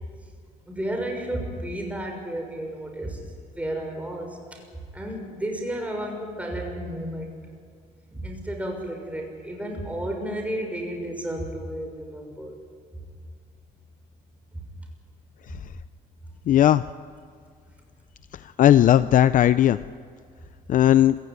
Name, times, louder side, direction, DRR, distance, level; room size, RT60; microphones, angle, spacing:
voice 1, 0.7-3.2 3.5-4.6 4.9-7.3 8.1-12.6 14.5-14.6, right 1 dB, 10° right, 2 dB, 6.3 m, -32 dB
voice 2, 16.5-16.8 18.6-19.8 20.7-21.2, left 11 dB, 50° left, 14 dB, 0.5 m, -17 dB
26.5 x 16.5 x 9.7 m, 2.1 s
cardioid pair, 110°, 17 cm